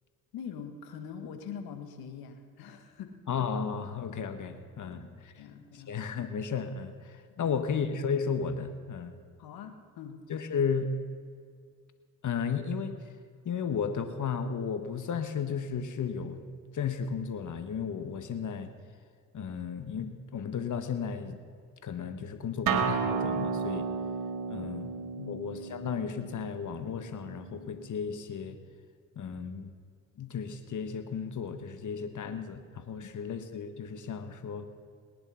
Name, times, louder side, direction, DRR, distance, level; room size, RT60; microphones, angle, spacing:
voice 1, 0.3-3.1 5.3-6.0 9.4-10.2 24.6-24.7 25.2-25.4, left 7 dB, 80° left, 6 dB, 1.7 m, -43 dB
voice 2, 3.3-5.4 5.7-9.2 10.3-10.9 12.2-13.1 13.4-16.4 16.7-18.7 19.3-21.4 21.8-23.9 24.5-24.9 25.3-28.6 29.1-29.7 30.2-34.7, left 6 dB, 55° left, 9 dB, 1.6 m, -34 dB
Acoustic guitar, 22.7-27.8, right 6 dB, 70° right, 1.7 m, -33 dB
19.0 x 10.5 x 5.7 m, 2.1 s
supercardioid pair, 55°, 36 cm